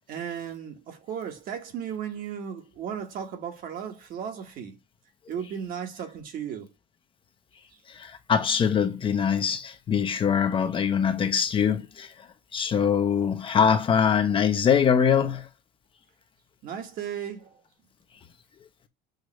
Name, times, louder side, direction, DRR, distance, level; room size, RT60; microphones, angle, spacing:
voice 1, 0.1-4.8 5.3-6.7 16.6-17.5, right 8 dB, 50° right, 1.3 m, -35 dB
voice 2, 7.9-12.1 12.5-15.5, left 7 dB, 25° left, 0.6 m, -23 dB
6.4 x 2.4 x 3.0 m
cardioid pair, 140°, 19 cm